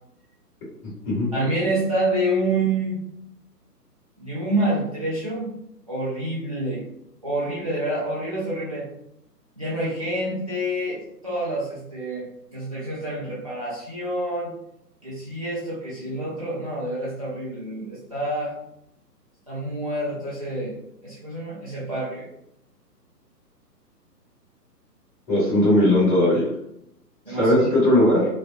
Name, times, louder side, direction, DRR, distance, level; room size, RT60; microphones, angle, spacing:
voice 1, 1.3-3.0 4.2-5.5 5.9-6.8 7.2-8.9 9.6-12.3 12.5-14.5 15.0-18.5 19.5-20.8 21.0-22.3 27.3-27.7, right 1 dB, 25° right, -7 dB, 0.4 m, -27 dB
voice 2, 25.3-26.5 27.3-28.2, left 1 dB, 15° left, -7 dB, 1.4 m, -18 dB
5.1 x 2.1 x 2.5 m, 0.79 s
figure-of-eight pair, 135°, 49 cm